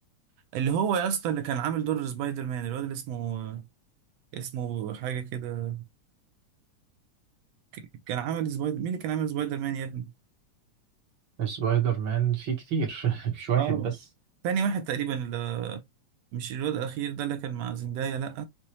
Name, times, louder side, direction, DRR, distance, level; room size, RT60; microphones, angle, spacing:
voice 1, 0.5-3.6 4.3-5.8 7.7-10.1 13.6-13.9 14.4-15.8 16.3-18.5, right 8 dB, 75° right, 1.6 m, -30 dB
voice 2, 11.4-13.8, right 8 dB, 55° right, 1.6 m, -27 dB
5.8 x 2.7 x 3.0 m
omnidirectional pair, 3.3 m